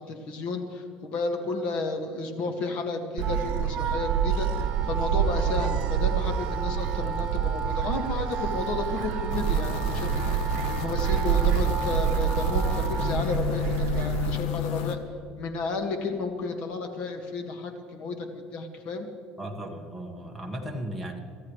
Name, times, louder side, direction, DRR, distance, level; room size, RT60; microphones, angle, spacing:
voice 1, 0.0-15.0 15.4-19.1, left 3 dB, 55° left, 5 dB, 2.0 m, -32 dB
Wind instrument woodwind instrument, 3.2-13.2, right 5 dB, 30° right, 1.7 m, -35 dB
Gull seagull, 3.2-14.4, right 9 dB, 70° right, 0.8 m, -27 dB
sound 1, 9.3-15.0, left 8 dB, 75° left, 1.3 m, -32 dB
voice 2, 19.4-21.2, right 1 dB, ahead, -1 dB, 1.7 m, -36 dB
23.5 x 14.5 x 3.3 m, 2.5 s
cardioid pair, 145°, 2 cm